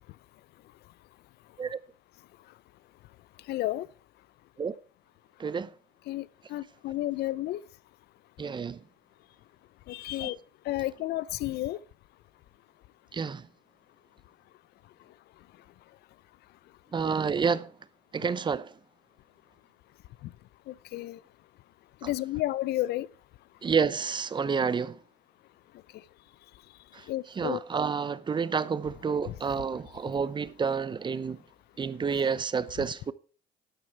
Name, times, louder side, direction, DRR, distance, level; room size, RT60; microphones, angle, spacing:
voice 1, 3.5-3.9 6.1-6.3 6.5-7.6 9.9-10.4 10.7-11.8 20.7-21.2 22.0-23.1 27.1-27.6, left 16 dB, 75° left, 0.6 m, -31 dB
voice 2, 5.4-5.7 8.4-8.8 10.2-10.3 13.1-13.5 16.9-17.7 18.1-18.7 23.6-25.0 26.9-31.4 31.8-33.1, right 5 dB, 25° right, 0.7 m, -29 dB
12.0 x 9.7 x 4.6 m
cardioid pair, 110°, 17 cm